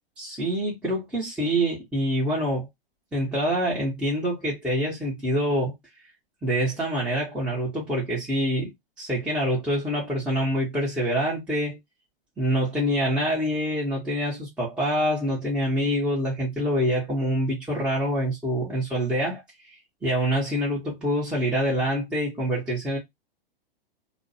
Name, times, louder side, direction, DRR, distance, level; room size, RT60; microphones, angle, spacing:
voice 1, 0.2-2.7 3.1-5.7 6.4-8.7 9.0-11.8 12.4-19.4 20.0-23.0, equal, 5° right, 0.8 m, -26 dB
2.4 x 2.0 x 2.6 m
hypercardioid pair, 115°, 30 cm